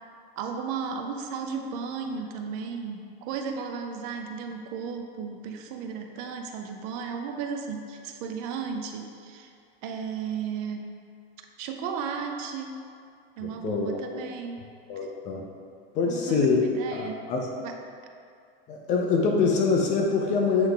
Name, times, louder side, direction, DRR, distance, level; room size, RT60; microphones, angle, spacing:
voice 1, 0.4-9.5 9.8-10.9 11.6-12.7 13.4-14.6 16.1-17.2 17.6-17.8, right 6 dB, 40° right, 4 dB, 0.5 m, -34 dB
voice 2, 13.4-14.0 14.9-15.5 15.9-16.6 16.9-17.5 18.7-20.7, left 4 dB, 25° left, 1 dB, 0.4 m, -25 dB
8.1 x 3.3 x 3.7 m, 2.3 s
supercardioid pair, 155°, 31 cm